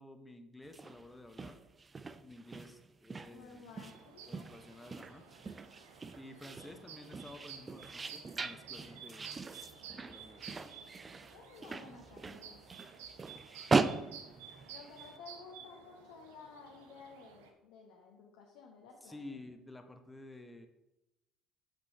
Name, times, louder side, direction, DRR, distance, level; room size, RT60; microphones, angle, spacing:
voice 1, 0.0-1.6 2.2-3.7 4.3-5.3 6.2-9.3 10.0-10.8 19.0-20.7, left 2 dB, 10° left, 7 dB, 1.1 m, -52 dB
sound 1, 0.6-15.1, right 4 dB, 30° right, 0.5 m, -39 dB
voice 2, 3.3-4.5 11.3-12.6 14.7-19.4, left 5 dB, 70° left, 0 dB, 1.1 m, -54 dB
sound 2, 3.8-17.5, right 7 dB, 75° right, 0.9 m, -53 dB
6.2 x 6.0 x 5.5 m, 0.94 s
hypercardioid pair, 55°, 0 cm